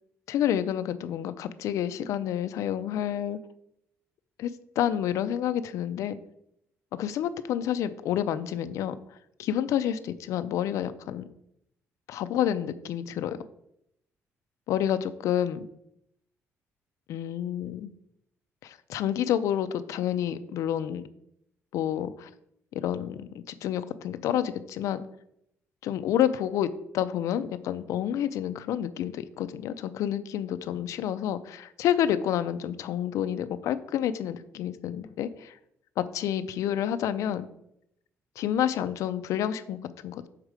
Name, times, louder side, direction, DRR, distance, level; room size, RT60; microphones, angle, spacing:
voice 1, 0.3-3.4 4.4-4.5 4.8-6.2 7.0-9.0 9.4-11.3 12.1-13.4 14.7-15.7 17.1-17.9 18.6-21.0 21.7-22.3 22.7-25.0 25.8-35.5 36.0-37.5 38.4-40.3, left 10 dB, 80° left, 11 dB, 0.4 m, -29 dB
6.4 x 4.8 x 4.9 m, 0.76 s
cardioid pair, 145°, 5 cm